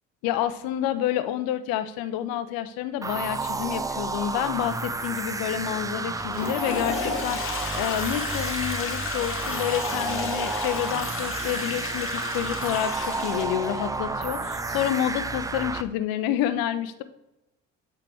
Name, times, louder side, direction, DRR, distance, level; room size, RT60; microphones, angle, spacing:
voice 1, 0.2-17.0, left 11 dB, 70° left, 13 dB, 0.7 m, -29 dB
sound 1, 3.0-15.8, right 3 dB, 10° right, 0.4 m, -31 dB
Toilet flush, 6.1-13.8, left 4 dB, 35° left, 1.4 m, -33 dB
8.3 x 4.6 x 3.4 m, 0.91 s
hypercardioid pair, 65°, 37 cm